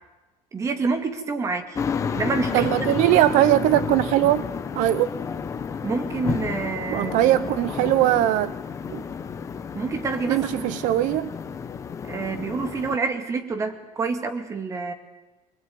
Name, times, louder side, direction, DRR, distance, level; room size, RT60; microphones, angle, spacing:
voice 1, 0.5-1.8 2.1-2.7 5.8-7.4 9.7-10.7 12.1-14.9, right 4 dB, 20° right, 8 dB, 2.3 m, -28 dB
sound 1, 1.8-13.0, left 6 dB, 20° left, 1.2 m, -31 dB
voice 2, 2.5-4.5 4.7-5.1 6.9-8.5 8.9-9.0 10.3-11.3, right 14 dB, 65° right, 16 dB, 0.8 m, -20 dB
25.5 x 20.5 x 9.5 m, 1.1 s
cardioid pair, 180°, 14 cm